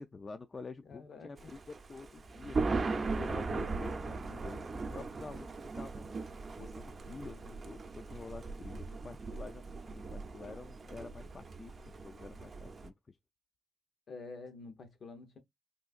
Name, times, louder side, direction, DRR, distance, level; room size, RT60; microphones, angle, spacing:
voice 1, 0.0-6.1 6.6-13.2, left 4 dB, 45° left, 0.3 m, -48 dB
voice 2, 0.8-1.5 14.1-15.4, left 3 dB, 70° left, 0.8 m, -48 dB
Thunder, 1.4-12.9, right 3 dB, 50° right, 0.5 m, -39 dB
3.8 x 2.4 x 2.4 m
cardioid pair, 55°, 0 cm